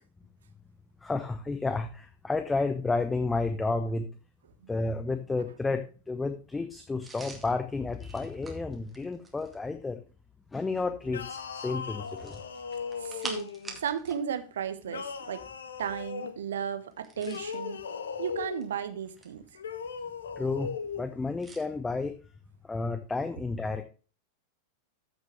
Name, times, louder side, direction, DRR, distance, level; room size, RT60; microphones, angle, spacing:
voice 1, 1.0-4.1 4.7-10.0 10.5-12.4 20.4-20.7 21.0-22.2 22.6-23.8, left 3 dB, 10° left, 8 dB, 0.9 m, -31 dB
sound 1, 7.0-9.7 12.1-14.2 14.5-14.7 16.9-17.6 18.4-19.5 21.4-21.7, right 3 dB, 10° right, 2.3 m, -45 dB
sound 2, 11.1-13.8 14.9-16.4 17.2-18.7 19.6-21.0, left 6 dB, 65° left, 1.0 m, -38 dB
voice 2, 13.0-13.5 13.8-15.4 15.8-17.8 18.2-19.4, right 8 dB, 65° right, 10 dB, 1.2 m, -34 dB
14.5 x 6.1 x 3.2 m, 0.35 s
figure-of-eight pair, 90°, 0 cm